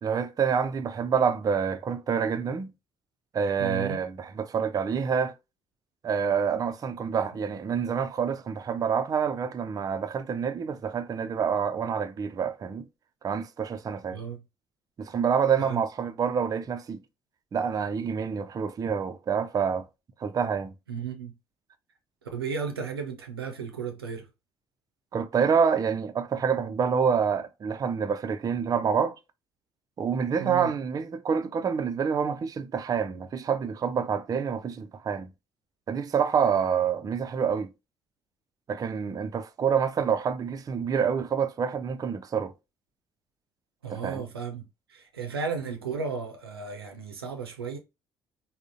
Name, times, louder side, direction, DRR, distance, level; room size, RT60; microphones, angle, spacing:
voice 1, 0.0-2.7 3.3-5.3 6.0-12.8 13.2-14.2 15.0-17.0 17.5-19.8 20.2-20.7 25.1-29.2 30.0-35.3 35.9-37.7 38.7-42.5 43.9-44.2, right 6 dB, 30° right, 0.4 m, -27 dB
voice 2, 3.6-4.0 14.1-14.4 15.7-15.8 20.9-21.3 22.3-24.3 30.3-30.7 32.2-32.3 43.8-44.6 44.9-47.8, right 5 dB, 85° right, 0.5 m, -34 dB
3.5 x 2.0 x 2.5 m
figure-of-eight pair, 50°, 12 cm